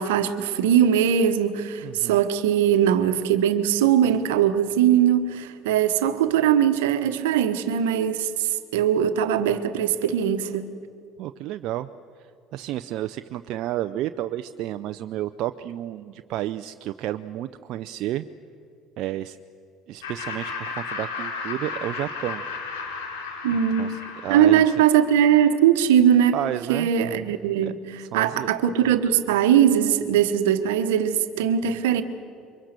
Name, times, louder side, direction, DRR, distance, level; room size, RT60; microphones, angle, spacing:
voice 1, 0.0-10.7 23.4-23.9 24.3-26.4 26.7-32.0, right 9 dB, 85° right, 1.2 m, -20 dB
voice 2, 1.8-2.2 11.2-11.9 12.5-18.3 19.0-19.4 19.9-22.4 23.7-24.7 26.3-26.9 27.6-27.7 28.0-28.5, right 13 dB, 65° right, 0.6 m, -31 dB
Laughter, 20.0-25.3, left 4 dB, 85° left, 4.7 m, -34 dB
28.0 x 24.0 x 6.8 m
hypercardioid pair, 65°, 0 cm